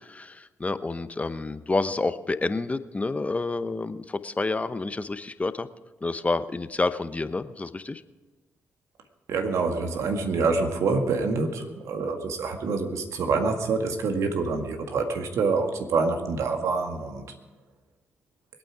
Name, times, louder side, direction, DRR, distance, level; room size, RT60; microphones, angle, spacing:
voice 1, 0.0-5.7 6.0-8.0, left 3 dB, 25° left, 12 dB, 0.9 m, -29 dB
voice 2, 9.3-17.4, right 4 dB, 70° right, 5 dB, 1.9 m, -26 dB
23.0 x 8.9 x 4.8 m, 1.3 s
hypercardioid pair, 45°, 5 cm